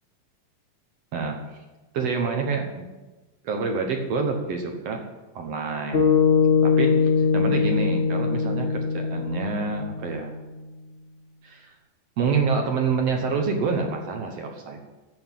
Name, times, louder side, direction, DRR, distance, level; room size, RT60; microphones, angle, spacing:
voice 1, 1.1-1.6 1.9-2.9 3.4-5.0 5.4-6.1 6.6-10.4 11.4-11.7 12.2-14.8, right 5 dB, 60° right, 3 dB, 1.8 m, -27 dB
sound 1, 5.9-10.3, left 5 dB, 45° left, 0.7 m, -21 dB
11.0 x 7.7 x 7.4 m, 1.2 s
omnidirectional pair, 4.0 m